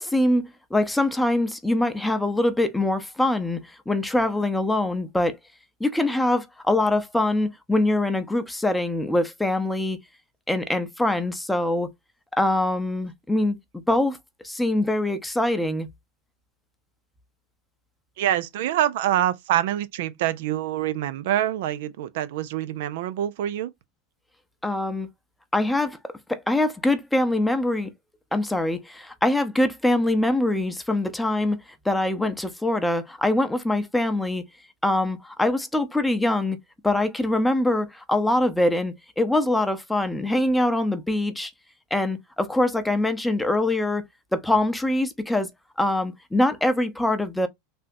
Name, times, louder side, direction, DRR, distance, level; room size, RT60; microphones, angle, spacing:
voice 1, 0.0-3.6 3.9-5.4 5.8-10.0 10.5-11.9 12.4-14.2 14.4-15.9 24.6-25.1 25.5-27.9 28.3-31.6 31.8-34.5 34.8-36.6 36.8-41.5 41.9-44.0 44.3-45.5 45.8-47.5, left 1 dB, 5° left, 0.6 m, -23 dB
voice 2, 18.2-23.7, right 12 dB, 65° right, 0.3 m, -25 dB
3.4 x 2.8 x 2.5 m
hypercardioid pair, 90°, 0 cm